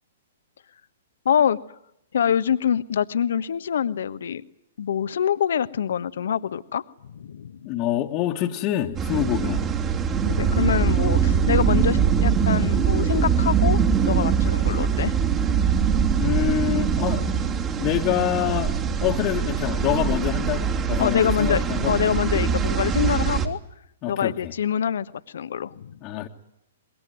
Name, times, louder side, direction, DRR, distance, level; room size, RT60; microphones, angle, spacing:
voice 1, 1.2-1.6 2.1-4.4 4.8-6.8 7.1-7.6 10.2-15.1 21.0-23.6 24.1-25.1 25.3-26.0, left 8 dB, 65° left, 14 dB, 1.2 m, -25 dB
voice 2, 7.7-9.7 16.2-17.3 17.8-21.9 24.0-24.5 26.0-26.3, left 13 dB, 35° left, -2 dB, 1.8 m, -26 dB
sound 1, 9.0-23.5, right 7 dB, 30° right, 3.1 m, -22 dB
25.5 x 22.0 x 9.5 m, 0.77 s
hypercardioid pair, 120°, 0 cm